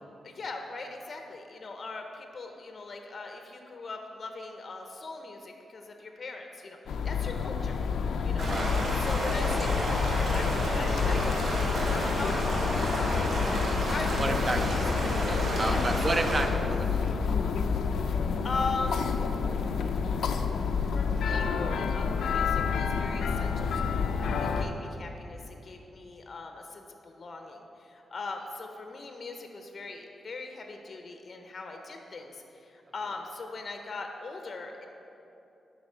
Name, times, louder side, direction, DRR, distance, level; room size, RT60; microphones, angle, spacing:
voice 1, 0.2-7.7 8.2-8.5 8.9-12.7 13.1-14.8 15.6-15.9 18.0-19.1 20.9-34.9, left 3 dB, 40° left, 4 dB, 0.6 m, -40 dB
sound 1, 6.9-24.6, left 6 dB, 90° left, 0.4 m, -29 dB
sound 2, 8.4-16.4, right 1 dB, 70° right, 2.0 m, -31 dB
voice 2, 14.2-14.9 15.3-17.2, right 2 dB, 25° right, 7 dB, 0.5 m, -31 dB
9.7 x 4.0 x 6.1 m, 2.8 s
wide cardioid pair, 160°, 0 cm